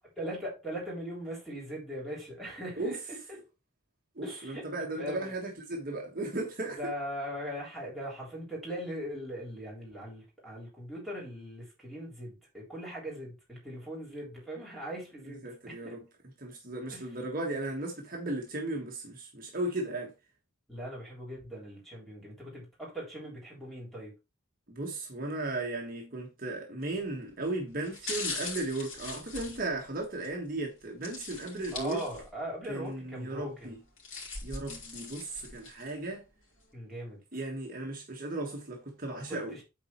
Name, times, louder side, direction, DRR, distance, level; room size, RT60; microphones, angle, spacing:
voice 1, 0.2-3.2 4.2-4.6 5.0-5.3 6.6-16.0 16.9-17.1 20.7-24.1 31.7-33.7 36.7-37.2 39.3-39.6, equal, ahead, 3.6 m, -40 dB
voice 2, 4.1-6.9 15.4-16.0 16.4-20.1 24.7-32.0 32.7-33.8 34.4-36.2 37.3-39.6, right 2 dB, 40° right, 1.4 m, -36 dB
sound 1, 26.8-27.1 27.8-30.3 31.0-32.5 32.8-32.9 33.7-35.9 36.4-36.5, left 4 dB, 75° left, 3.3 m, -41 dB
8.6 x 4.2 x 4.3 m
head